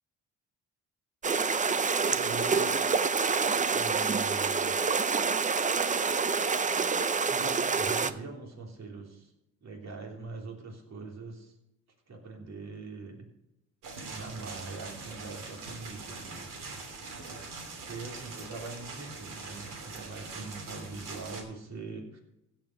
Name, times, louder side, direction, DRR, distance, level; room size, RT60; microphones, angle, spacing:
sound 1, 1.2-8.1, right 5 dB, 25° right, 0.6 m, -27 dB
voice 1, 2.1-2.8 3.5-4.7 7.2-9.3 9.6-11.5 12.1-13.3 14.1-16.8 17.8-22.2, right 3 dB, 55° right, 1 dB, 3.3 m, -42 dB
sound 2, 13.8-21.4, right 3 dB, 75° right, 3.0 m, -43 dB
16.0 x 5.5 x 6.0 m, 0.87 s
cardioid pair, 95°, 33 cm